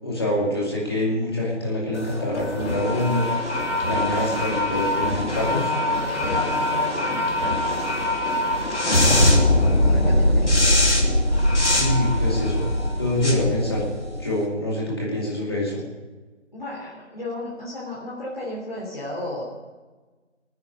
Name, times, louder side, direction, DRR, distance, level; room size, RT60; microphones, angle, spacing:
voice 1, 0.0-3.3 3.8-5.7 11.7-12.6 13.0-13.9 14.2-15.8, left 1 dB, 20° left, -4 dB, 2.4 m, -25 dB
sound 1, 1.9-14.3, left 1 dB, 70° left, 5.0 m, -22 dB
voice 2, 5.4-7.9 8.8-10.6 16.5-19.4, left 1 dB, 40° left, -7 dB, 3.4 m, -34 dB
18.5 x 9.5 x 6.5 m, 1.3 s
figure-of-eight pair, 175°, 37 cm